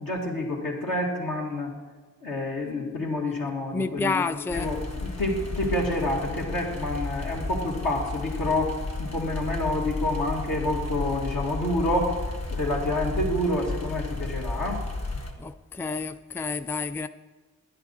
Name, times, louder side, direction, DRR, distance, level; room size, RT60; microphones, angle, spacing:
voice 1, 0.0-1.8 2.2-14.8, left 1 dB, 85° left, 2.2 m, -28 dB
voice 2, 3.7-4.7 15.4-17.1, left 3 dB, 5° left, 0.4 m, -29 dB
sound 1, 4.5-15.3, left 3 dB, 50° left, 1.8 m, -33 dB
10.5 x 9.9 x 4.1 m
cardioid pair, 40°, 33 cm